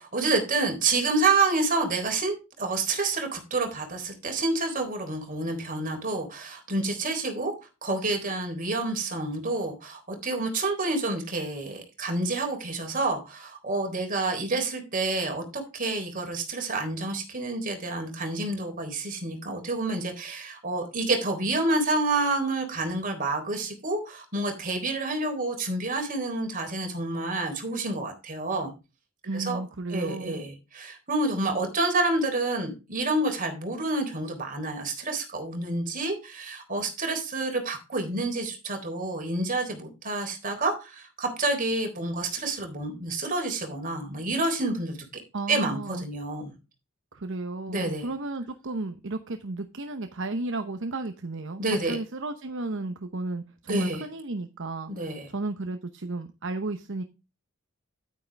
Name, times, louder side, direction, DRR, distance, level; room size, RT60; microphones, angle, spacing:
voice 1, 0.0-7.5 7.8-28.7 29.3-29.6 29.9-45.0 45.5-46.5 47.7-48.1 51.6-52.0 53.7-54.0 54.9-55.3, right 2 dB, 40° right, 3 dB, 3.7 m, -28 dB
voice 2, 29.2-30.4 45.3-46.1 47.1-51.6 51.9-54.9 55.3-57.0, right 2 dB, 60° right, 8 dB, 0.9 m, -33 dB
10.5 x 9.3 x 3.4 m, 0.28 s
head